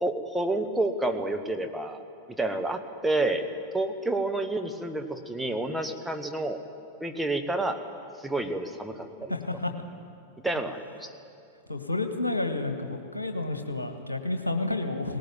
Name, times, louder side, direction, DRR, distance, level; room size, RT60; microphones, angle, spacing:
voice 1, 0.0-2.0 2.4-3.5 3.7-6.6 7.0-7.8 8.2-9.3 10.4-11.1, right 2 dB, 5° right, 5 dB, 1.5 m, -29 dB
voice 2, 9.3-9.7 11.7-15.2, left 2 dB, 80° left, 6 dB, 1.7 m, -30 dB
18.5 x 18.5 x 9.2 m, 2.5 s
figure-of-eight pair, 90°, 0 cm